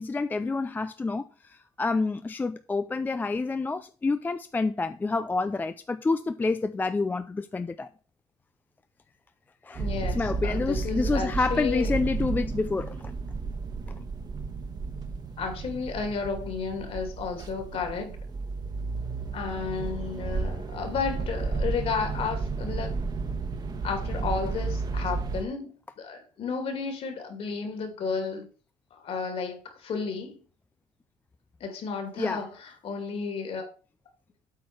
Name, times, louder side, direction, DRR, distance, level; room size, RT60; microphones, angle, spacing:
voice 1, 0.0-7.9 9.6-9.8 10.1-13.0 13.9-14.0 32.2-32.4, left 3 dB, 15° left, 0.4 m, -28 dB
voice 2, 9.7-11.9 15.4-18.2 19.3-23.0 23.8-28.5 28.9-30.4 31.6-33.7, left 5 dB, 50° left, 2.7 m, -33 dB
sound 1, 9.7-25.4, right 4 dB, 30° right, 1.3 m, -32 dB
8.4 x 4.6 x 6.2 m
cardioid pair, 120°, 13 cm